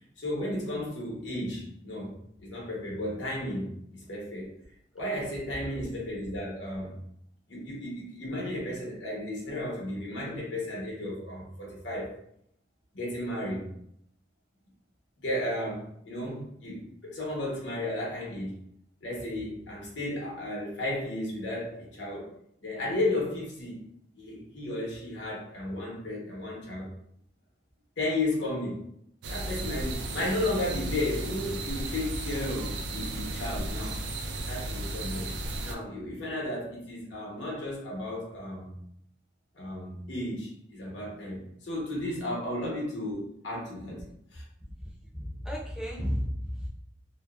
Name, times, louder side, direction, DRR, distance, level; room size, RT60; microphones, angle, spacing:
voice 1, 0.2-2.1 2.4-4.5 4.9-7.0 7.5-12.1 12.9-13.7 15.2-18.5 19.0-22.3 22.6-23.8 24.2-26.9 28.0-28.9 29.3-34.0 34.5-35.3 35.6-38.8 39.5-44.0 44.3-44.4, left 1 dB, 80° left, -3 dB, 0.8 m, -34 dB
sound 1, 29.2-35.8, right 2 dB, 70° right, 0.3 m, -34 dB
voice 2, 44.8-46.7, equal, 5° right, -4 dB, 0.5 m, -33 dB
2.7 x 2.0 x 2.2 m, 0.71 s
head